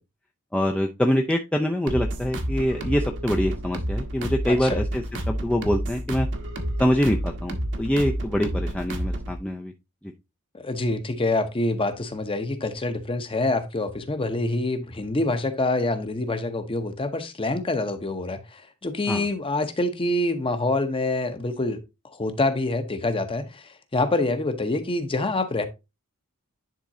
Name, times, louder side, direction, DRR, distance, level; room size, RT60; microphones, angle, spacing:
voice 1, 0.5-6.3 6.8-9.7 19.1-19.3, equal, 5° left, 0.4 m, -25 dB
sound 1, 1.9-9.4, right 1 dB, 55° right, 1.1 m, -30 dB
voice 2, 4.5-4.8 10.5-21.8 22.1-23.6 23.9-25.6, left 2 dB, 25° left, 0.8 m, -26 dB
10.5 x 3.7 x 2.7 m
head